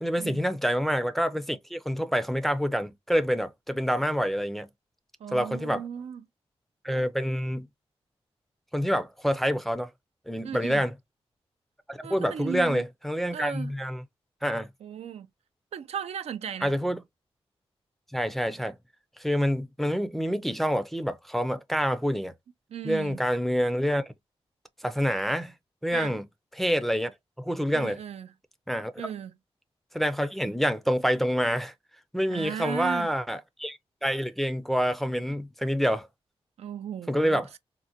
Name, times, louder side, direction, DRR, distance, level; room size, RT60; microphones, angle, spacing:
voice 1, 0.0-4.7 5.3-5.8 6.8-7.7 8.7-9.9 10.3-10.9 11.9-14.0 14.4-14.7 16.6-17.0 18.1-18.8 19.2-22.3 22.8-24.0 24.8-25.5 25.8-26.2 26.6-27.1 27.4-28.0 28.7-28.9 29.9-31.7 32.1-36.1 37.1-37.5, equal, ahead, 0.4 m, -27 dB
voice 2, 5.2-6.2 10.4-10.8 12.0-12.9 13.3-13.7 14.8-15.3 15.7-16.7 22.7-23.2 25.9-26.2 27.7-28.3 29.0-29.3 32.3-33.1 35.0-35.1 36.6-37.6, right 8 dB, 90° right, 0.4 m, -36 dB
3.7 x 2.1 x 2.7 m
wide cardioid pair, 110°, 10 cm